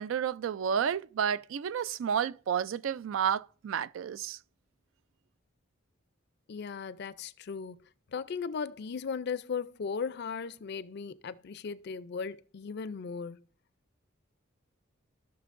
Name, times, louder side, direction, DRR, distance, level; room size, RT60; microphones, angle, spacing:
voice 1, 0.0-4.4, right 8 dB, 75° right, 0.3 m, -31 dB
voice 2, 6.5-7.8 8.1-13.4, left 5 dB, 55° left, 0.4 m, -37 dB
16.5 x 5.9 x 2.5 m
head